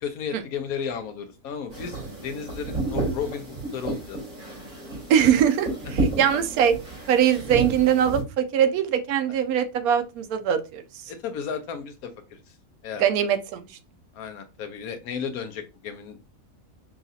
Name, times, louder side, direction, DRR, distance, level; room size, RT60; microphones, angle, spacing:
voice 1, 0.0-4.2 9.3-9.4 11.1-12.4 12.8-13.1 14.1-16.2, left 7 dB, 85° left, 8 dB, 1.1 m, -34 dB
sound 1, 1.7-8.2, right 2 dB, 70° right, 3.3 m, -31 dB
voice 2, 5.1-6.8 7.1-10.8 13.0-13.7, right 9 dB, 90° right, 9 dB, 1.1 m, -22 dB
5.8 x 2.4 x 2.7 m, 0.28 s
omnidirectional pair, 1.5 m